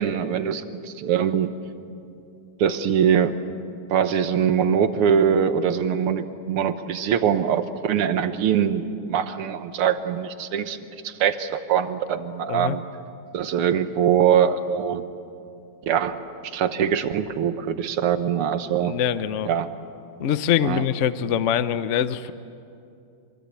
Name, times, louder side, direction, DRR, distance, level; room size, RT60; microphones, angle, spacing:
voice 1, 0.0-1.5 2.6-3.4 3.9-12.8 13.3-15.0 15.9-16.2 16.4-18.9 19.5-19.7 20.6-20.8, right 8 dB, 90° right, 10 dB, 2.0 m, -23 dB
voice 2, 18.8-19.5 20.2-22.3, left 9 dB, 70° left, 13 dB, 0.7 m, -24 dB
26.0 x 23.0 x 8.3 m, 2.6 s
omnidirectional pair, 2.4 m